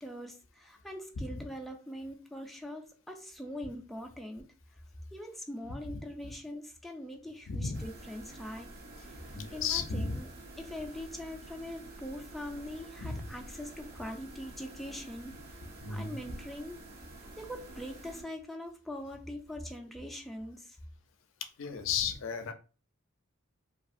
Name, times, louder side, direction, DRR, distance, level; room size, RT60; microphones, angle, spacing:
voice 1, 0.0-4.5 5.1-8.7 9.0-10.3 10.6-15.6 15.9-16.8 17.4-20.8, left 1 dB, ahead, 2 dB, 0.3 m, -42 dB
voice 2, 1.2-1.5 7.5-7.9 9.3-10.2 13.0-13.3 15.8-16.2 21.6-22.5, left 5 dB, 70° left, 8 dB, 0.5 m, -34 dB
sound 1, 7.7-18.2, right 1 dB, 50° right, 0.6 m, -49 dB
2.8 x 2.3 x 2.5 m, 0.34 s
head